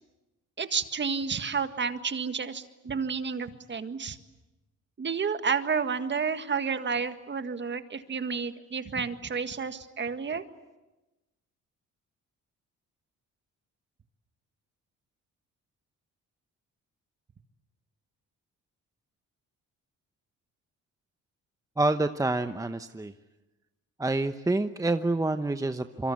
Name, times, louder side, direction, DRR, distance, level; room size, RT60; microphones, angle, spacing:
voice 1, 0.6-4.2 5.0-10.4, right 5 dB, 35° right, 9 dB, 1.8 m, -31 dB
voice 2, 21.8-23.1 24.0-26.1, right 2 dB, 10° right, 9 dB, 0.9 m, -27 dB
26.0 x 24.0 x 8.6 m, 1.1 s
cardioid pair, 90°, 30 cm